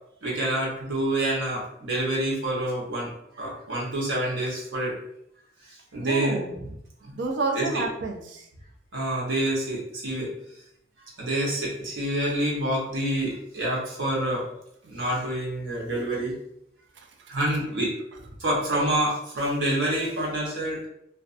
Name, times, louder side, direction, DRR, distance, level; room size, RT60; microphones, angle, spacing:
voice 1, 0.2-3.1 3.4-5.0 5.7-6.4 7.0-7.1 7.5-7.8 8.9-10.3 11.2-14.4 14.8-16.3 17.3-17.9 18.4-20.9, right 1 dB, 90° right, -4 dB, 0.9 m, -27 dB
voice 2, 6.0-6.7 7.1-8.5 17.0-17.3, right 3 dB, 70° right, 2 dB, 0.5 m, -30 dB
2.4 x 2.3 x 2.5 m, 0.76 s
head